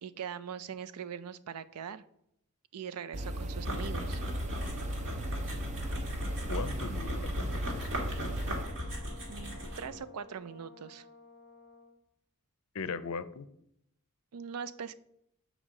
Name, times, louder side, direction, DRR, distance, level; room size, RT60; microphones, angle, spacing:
voice 1, 0.0-2.0 2.7-4.2 9.3-11.1 14.3-14.9, right 7 dB, 90° right, 13 dB, 0.4 m, -41 dB
Brass instrument, 3.1-12.0, left 3 dB, 15° left, 0.8 m, -55 dB
sound 1, 3.1-8.7, right 1 dB, 30° right, 0.5 m, -37 dB
sound 2, 3.6-10.0, equal, 55° right, 1.7 m, -38 dB
voice 2, 6.5-8.2 12.7-13.5, left 5 dB, 70° left, 13 dB, 0.5 m, -39 dB
8.0 x 5.0 x 3.7 m, 0.76 s
head